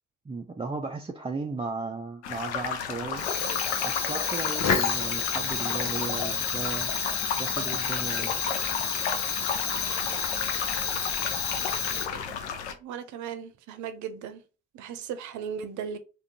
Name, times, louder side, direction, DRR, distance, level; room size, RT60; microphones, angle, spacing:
voice 1, 0.3-3.3 3.8-6.9 7.4-8.3, right 4 dB, 15° right, 0.4 m, -35 dB
sound 1, 2.2-12.7, left 6 dB, 85° left, 0.5 m, -33 dB
Fire, 3.1-12.5, left 6 dB, 55° left, 0.9 m, -30 dB
voice 2, 12.8-14.4 14.7-16.0, right 7 dB, 60° right, 0.6 m, -36 dB
3.5 x 2.3 x 2.7 m
hypercardioid pair, 45°, 33 cm